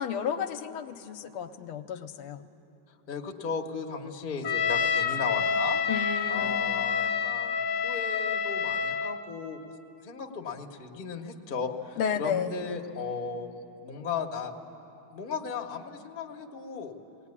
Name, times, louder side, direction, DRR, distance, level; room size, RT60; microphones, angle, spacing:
voice 1, 0.0-2.5 5.9-6.6 12.0-12.5, left 7 dB, 80° left, 8 dB, 1.6 m, -32 dB
voice 2, 3.1-5.8 6.3-9.6 10.0-13.5 13.8-14.5 15.1-17.0, left 5 dB, 35° left, 2 dB, 0.9 m, -36 dB
Trumpet, 4.4-9.2, left 6 dB, 65° left, 1.2 m, -28 dB
19.5 x 18.5 x 9.8 m, 2.8 s
omnidirectional pair, 2.4 m